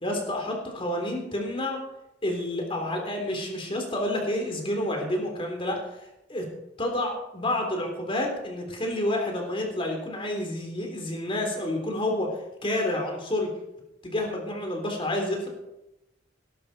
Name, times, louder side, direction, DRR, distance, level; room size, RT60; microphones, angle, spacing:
voice 1, 0.0-1.8 2.2-5.8 6.3-6.5 6.8-12.3 12.6-13.5 14.0-15.5, left 1 dB, 30° left, 2 dB, 3.7 m, -29 dB
18.0 x 12.0 x 4.4 m, 0.90 s
head